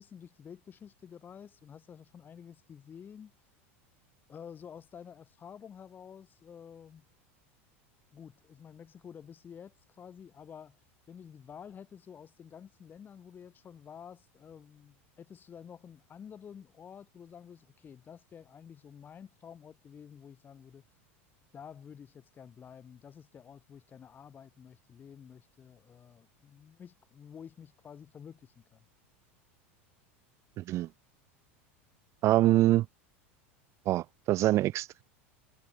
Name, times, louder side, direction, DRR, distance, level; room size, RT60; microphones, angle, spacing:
voice 1, 0.0-3.3 4.3-7.1 8.1-10.8 11.1-20.8 21.5-28.9, left 7 dB, 30° left, 3.8 m, -50 dB
voice 2, 30.6-30.9 32.2-32.9 33.9-35.0, right 15 dB, 45° right, 0.7 m, -25 dB
supercardioid pair, 110°, 7 cm